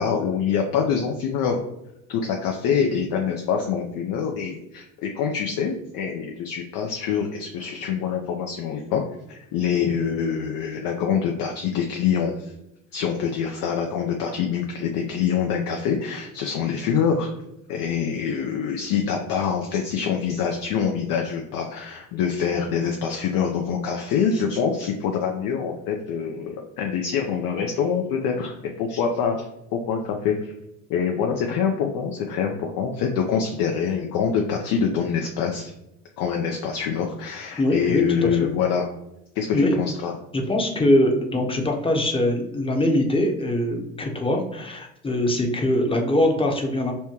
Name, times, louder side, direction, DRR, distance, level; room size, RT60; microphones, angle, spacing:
voice 1, 0.0-1.6 2.1-9.0 9.3-12.5 12.9-17.3 17.7-29.4 29.7-30.4 30.9-35.7 36.2-38.9 39.4-40.1, left 7 dB, 55° left, 2 dB, 0.6 m, -25 dB
voice 2, 37.6-38.5 39.5-39.8 40.3-46.9, left 1 dB, 15° left, 2 dB, 0.8 m, -22 dB
5.5 x 2.1 x 2.9 m, 0.84 s
hypercardioid pair, 55°, 42 cm